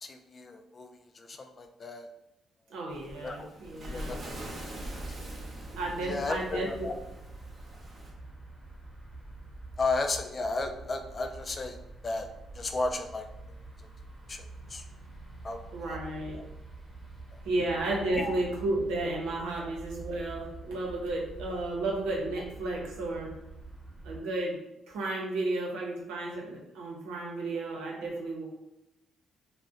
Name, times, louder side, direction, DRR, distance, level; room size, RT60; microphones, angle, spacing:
voice 1, 0.0-0.9 1.1-2.1 3.2-3.5 3.9-4.2 6.0-6.9 9.8-11.8 12.0-12.3 12.6-13.3 14.3-14.8 15.4-15.6 15.9-16.0 18.1-18.3, left 3 dB, 35° left, 6 dB, 0.4 m, -33 dB
voice 2, 2.7-4.2 5.8-6.9 15.7-16.4 17.4-23.3 24.0-24.6 24.9-28.5, right 2 dB, 90° right, -2 dB, 0.7 m, -33 dB
Waves surf, 2.9-8.1, right 1 dB, 40° right, 0.7 m, -43 dB
sound 1, 4.4-24.2, right 2 dB, 5° right, 1.1 m, -46 dB
2.6 x 2.1 x 3.5 m, 0.89 s
cardioid pair, 90°, 0 cm